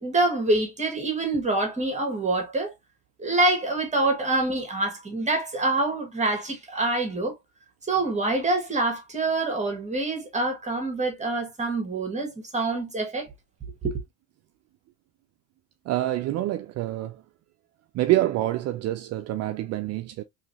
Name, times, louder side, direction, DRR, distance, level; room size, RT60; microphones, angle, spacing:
voice 1, 0.0-2.7 3.2-7.3 7.9-13.3 13.8-14.0, right 2 dB, 20° right, 1.3 m, -26 dB
voice 2, 15.9-17.2 17.9-20.2, right 15 dB, 45° right, 0.4 m, -26 dB
3.1 x 3.0 x 2.7 m
supercardioid pair, 105°, 38 cm